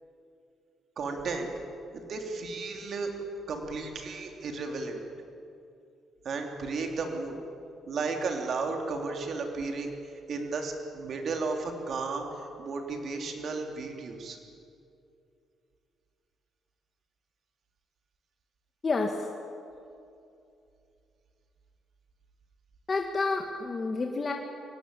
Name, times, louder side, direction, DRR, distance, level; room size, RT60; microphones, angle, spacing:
voice 1, 1.0-1.5 1.9-3.1 3.5-5.0 6.2-7.4 7.9-14.4, right 4 dB, 55° right, 3 dB, 3.6 m, -34 dB
voice 2, 18.8-19.3 22.9-24.3, left 3 dB, 35° left, 2 dB, 1.9 m, -29 dB
23.5 x 18.5 x 8.5 m, 2.6 s
cardioid pair, 90°, 0 cm